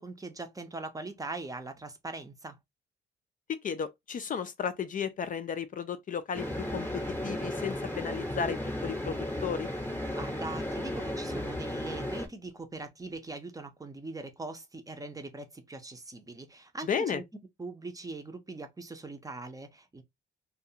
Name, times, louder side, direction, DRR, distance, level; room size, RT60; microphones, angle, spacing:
voice 1, 0.0-2.6 10.1-17.2 17.6-20.0, right 3 dB, 15° right, 0.6 m, -41 dB
voice 2, 3.6-6.4 6.7-9.7 16.9-17.2, left 7 dB, 45° left, 0.4 m, -34 dB
sound 1, 6.3-12.3, left 1 dB, 10° left, 0.8 m, -34 dB
2.4 x 2.3 x 2.7 m
cardioid pair, 90°, 20 cm